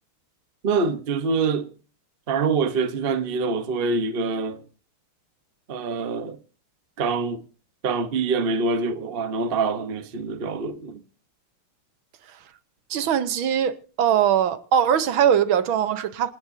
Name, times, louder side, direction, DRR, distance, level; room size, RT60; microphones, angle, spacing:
voice 1, 0.6-1.7 2.3-4.6 5.7-6.4 7.0-7.4 7.8-11.0, right 4 dB, 45° right, 0.7 m, -25 dB
voice 2, 12.9-16.3, right 9 dB, 70° right, 1.7 m, -21 dB
27.0 x 10.0 x 2.7 m
omnidirectional pair, 2.4 m